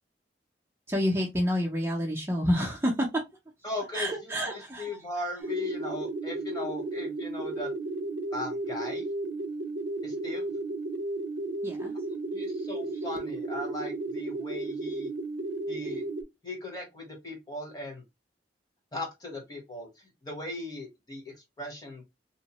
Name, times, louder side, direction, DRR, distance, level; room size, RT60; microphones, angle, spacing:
voice 1, 0.9-3.2 3.9-4.9 11.6-11.9, equal, 15° right, -3 dB, 0.5 m, -28 dB
voice 2, 3.6-7.7 8.3-9.1 10.0-10.5 12.3-15.1 15.7-16.0 16.4-18.0 18.9-22.0, left 2 dB, 20° left, 1 dB, 0.9 m, -38 dB
sound 1, 5.4-16.2, right 2 dB, 75° right, 0.5 m, -34 dB
2.8 x 2.1 x 2.8 m, 0.21 s
head